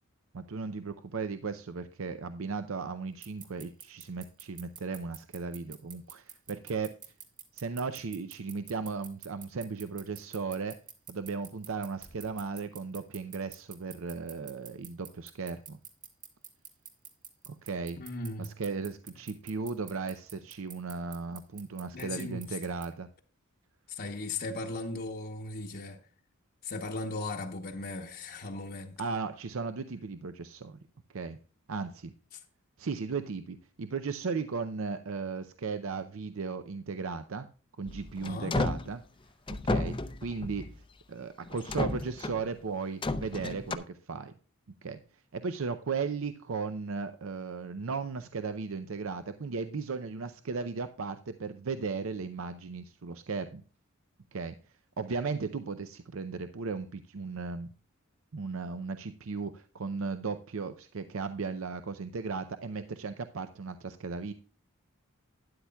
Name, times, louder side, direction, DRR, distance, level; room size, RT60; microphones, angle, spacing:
voice 1, 0.3-6.9 7.5-10.7 11.1-15.8 17.5-18.0 18.4-23.1 29.0-30.8 31.1-31.4 31.7-32.1 32.8-37.5 37.8-39.0 39.6-40.0 40.2-40.7 41.1-44.3 44.8-45.0 45.3-53.6 54.3-54.6 55.0-57.7 58.3-64.3, right 4 dB, 65° right, 0.6 m, -36 dB
sound 1, 3.2-22.9, right 8 dB, 35° right, 1.6 m, -46 dB
voice 2, 18.0-18.5 21.9-22.7 23.9-26.0 26.6-29.0 32.3-32.4 38.2-38.6, left 2 dB, 45° left, 0.9 m, -37 dB
sound 2, 37.9-38.9 39.5-40.8 41.5-42.5 43.0-43.7, left 2 dB, 25° left, 0.5 m, -32 dB
12.5 x 10.0 x 2.3 m
head